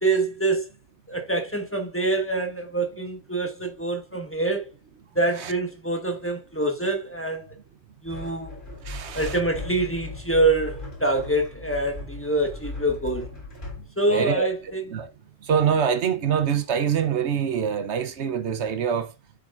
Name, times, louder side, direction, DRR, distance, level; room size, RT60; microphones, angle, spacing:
voice 1, 0.0-0.7 1.1-4.7 5.1-7.5 8.0-8.6 9.1-13.3 14.0-14.8, right 2 dB, 10° left, 1.4 m, -25 dB
sound 1, 8.1-13.9, left 2 dB, 50° left, 3.7 m, -38 dB
voice 2, 8.8-9.4 14.1-14.5 14.9-15.1 15.4-19.1, right 7 dB, 90° right, 1.2 m, -24 dB
7.4 x 6.5 x 2.5 m
omnidirectional pair, 1.1 m